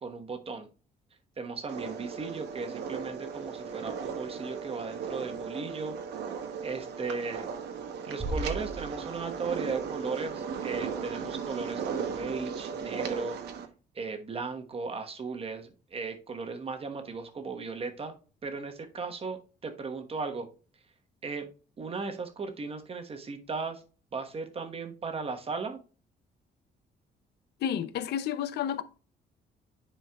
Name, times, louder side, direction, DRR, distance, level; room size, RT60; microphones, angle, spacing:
voice 1, 0.0-0.7 1.4-5.9 6.6-7.5 8.0-13.4 13.9-20.5 21.2-21.5 21.8-23.8 24.1-25.8, right 4 dB, 35° right, 1.2 m, -36 dB
sound 1, 1.7-13.7, right 6 dB, 75° right, 1.0 m, -36 dB
sound 2, 8.2-9.6, right 2 dB, ahead, 2.1 m, -36 dB
voice 2, 27.6-28.8, left 9 dB, 75° left, 0.6 m, -31 dB
10.5 x 4.5 x 2.3 m
cardioid pair, 105°, 17 cm